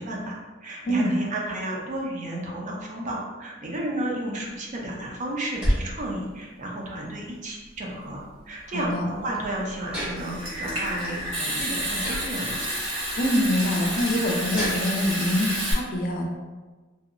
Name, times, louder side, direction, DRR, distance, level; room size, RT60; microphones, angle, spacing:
voice 1, 0.0-8.2 8.5-12.6, right 1 dB, 40° right, -2 dB, 0.4 m, -32 dB
sound 1, 4.4-15.2, equal, 5° right, 0.7 m, -35 dB
voice 2, 8.7-9.1 13.2-16.3, equal, 45° left, 1 dB, 0.4 m, -25 dB
Water tap faucet / Sink (filling or washing) / Trickle dribble, 10.2-15.7, equal, 75° right, 1.1 m, -30 dB
2.7 x 2.0 x 2.4 m, 1.3 s
head